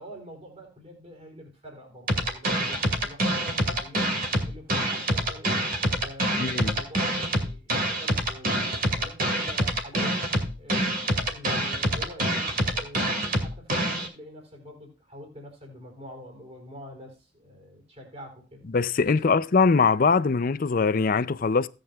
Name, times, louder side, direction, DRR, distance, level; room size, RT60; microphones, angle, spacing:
voice 1, 0.0-4.1 4.4-5.7 6.0-8.6 9.0-10.3 10.6-18.7 19.2-19.4, equal, 35° right, 4.1 m, -46 dB
sound 1, 2.1-14.1, right 1 dB, 50° right, 2.3 m, -26 dB
voice 2, 6.4-6.7 18.7-21.7, left 4 dB, 45° left, 0.5 m, -22 dB
16.5 x 8.9 x 2.4 m
head